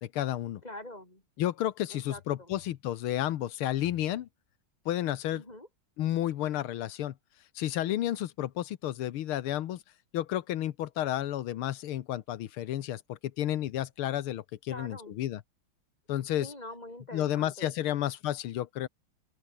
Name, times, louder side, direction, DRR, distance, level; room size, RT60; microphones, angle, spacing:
voice 1, 0.0-0.6 1.4-4.3 4.9-5.4 6.0-7.1 7.6-9.8 10.1-15.4 16.1-16.5 17.1-18.9, left 12 dB, 80° left, 1.8 m, -31 dB
voice 2, 0.6-1.2 1.9-2.5 5.3-5.7 14.7-15.2 16.4-18.0, left 1 dB, 15° left, 6.6 m, -45 dB
open air
omnidirectional pair, 2.3 m